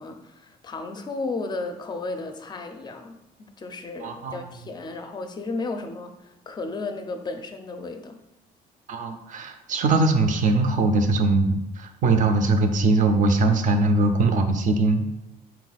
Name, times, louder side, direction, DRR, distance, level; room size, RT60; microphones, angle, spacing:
voice 1, 0.0-8.2, left 3 dB, 25° left, 6 dB, 0.4 m, -34 dB
voice 2, 4.0-4.5 8.9-15.1, right 3 dB, 50° right, 7 dB, 0.5 m, -21 dB
4.2 x 2.3 x 3.9 m, 0.93 s
cardioid pair, 110°, 17 cm